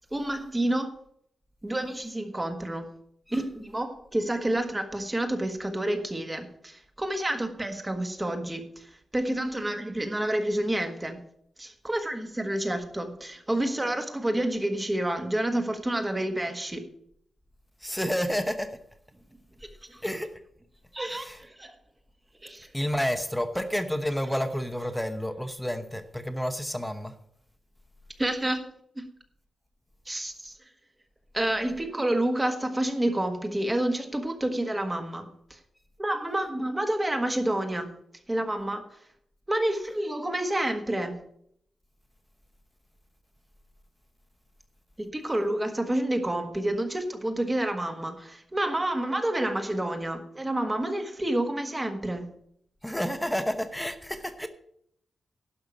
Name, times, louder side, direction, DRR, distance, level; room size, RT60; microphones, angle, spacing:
voice 1, 0.1-0.9 1.6-2.9 3.3-11.2 11.6-16.8 19.9-20.0 20.9-21.7 22.4-22.7 24.8-24.9 28.2-28.6 28.9-29.1 30.1-30.5 31.3-35.6 36.0-37.9 38.3-38.8 39.5-41.2 45.0-52.3 54.4-54.5, right 1 dB, 15° right, 1.5 m, -29 dB
voice 2, 17.8-18.8 20.0-20.4 21.1-21.4 22.7-27.1 52.8-54.5, equal, 5° left, 0.9 m, -30 dB
12.0 x 5.8 x 8.3 m
wide cardioid pair, 150°, 0 cm